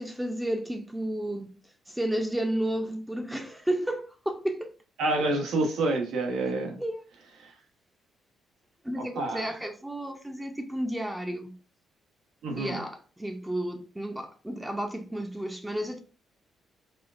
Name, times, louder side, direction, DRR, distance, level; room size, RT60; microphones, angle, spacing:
voice 1, 0.0-1.5 1.9-4.7 6.8-7.0 8.8-11.5 12.6-16.0, right 1 dB, 10° right, 0.6 m, -32 dB
voice 2, 5.0-6.8 7.4-7.5 9.0-9.5 12.4-12.8, right 2 dB, 80° right, 1.1 m, -28 dB
4.2 x 2.5 x 2.4 m
cardioid pair, 90°, 0 cm